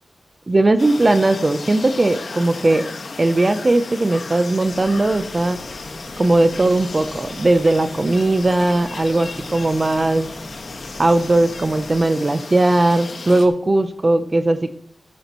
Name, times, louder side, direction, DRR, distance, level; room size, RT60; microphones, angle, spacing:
voice 1, 0.5-2.9 3.2-5.6 6.2-10.3 11.0-14.7, right 2 dB, 35° right, 10 dB, 0.7 m, -18 dB
sound 1, 0.8-13.5, left 3 dB, 75° left, 1.5 m, -34 dB
sound 2, 4.6-12.0, right 1 dB, 55° right, 3.8 m, -42 dB
13.0 x 10.5 x 3.1 m, 0.67 s
wide cardioid pair, 75°, 0 cm